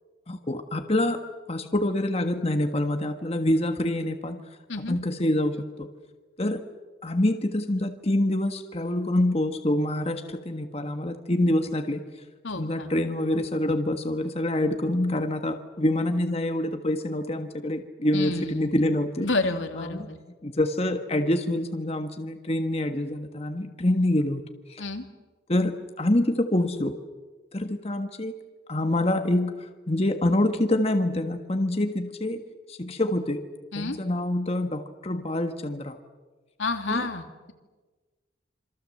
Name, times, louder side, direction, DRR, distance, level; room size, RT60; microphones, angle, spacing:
voice 1, 0.3-1.2 1.5-4.4 4.9-5.9 6.4-6.6 7.0-12.0 12.6-19.3 19.7-20.1 20.4-24.4 24.7-24.8 25.5-27.0 27.5-28.4 28.7-32.4 32.7-33.4 33.7-36.0 36.9-37.1, left 1 dB, 30° left, 6 dB, 1.5 m, -26 dB
voice 2, 12.4-12.9 18.1-18.8 19.2-20.1 24.8-25.0 33.7-34.0 36.6-37.5, left 3 dB, 80° left, 5 dB, 2.8 m, -30 dB
27.5 x 26.0 x 7.7 m, 1.3 s
head